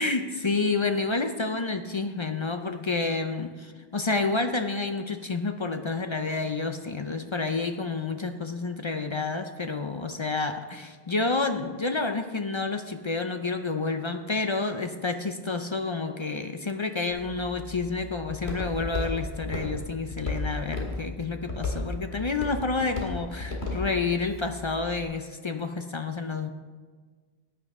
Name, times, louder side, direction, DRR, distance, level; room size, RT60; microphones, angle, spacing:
voice 1, 0.0-26.5, left 3 dB, 40° left, 7 dB, 0.4 m, -29 dB
Walk footsteps, 17.1-25.0, left 2 dB, 90° left, 2.3 m, -35 dB
14.5 x 9.7 x 3.6 m, 1.5 s
omnidirectional pair, 1.1 m